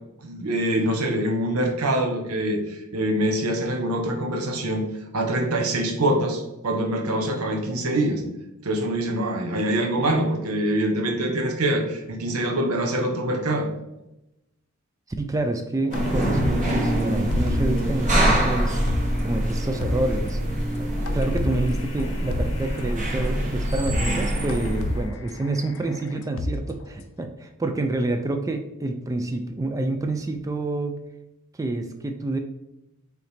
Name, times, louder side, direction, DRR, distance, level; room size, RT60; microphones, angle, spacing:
voice 1, 0.2-4.8 5.1-8.2 8.6-13.7, right 1 dB, 80° right, 3 dB, 0.9 m, -24 dB
voice 2, 15.2-18.8 19.2-20.4 20.8-31.0 31.6-32.4, right 2 dB, 15° right, 6 dB, 0.3 m, -28 dB
sound 1, 15.9-17.9 18.2-18.3 18.7-19.2 19.5-19.6 19.8-20.3 21.1-22.9 23.4-23.5 23.7-24.2 24.5-27.0, left 2 dB, 65° left, 0.4 m, -31 dB
sound 2, 15.9-25.1, right 1 dB, 35° right, 0.9 m, -25 dB
4.8 x 3.1 x 3.3 m, 0.91 s
head